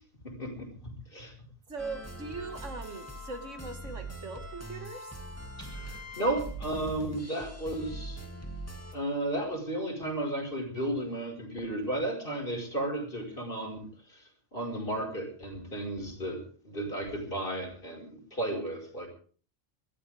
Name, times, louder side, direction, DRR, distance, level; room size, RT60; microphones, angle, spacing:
voice 1, 0.2-1.3 5.6-8.2 8.9-19.1, right 1 dB, 45° left, 2 dB, 5.2 m, -34 dB
voice 2, 1.7-5.1, right 3 dB, 80° right, 7 dB, 2.3 m, -40 dB
sound 1, 1.8-8.9, right 1 dB, 10° left, 2.7 m, -42 dB
24.0 x 14.5 x 3.5 m, 0.42 s
omnidirectional pair, 1.2 m